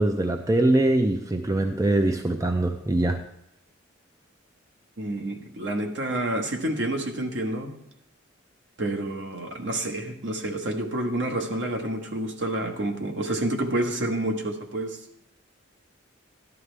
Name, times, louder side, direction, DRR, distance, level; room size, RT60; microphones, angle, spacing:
voice 1, 0.0-3.2, right 1 dB, 15° right, 5 dB, 0.5 m, -23 dB
voice 2, 5.0-7.7 8.8-15.2, right 1 dB, 60° right, 3 dB, 1.3 m, -29 dB
13.5 x 11.0 x 3.4 m, 0.75 s
head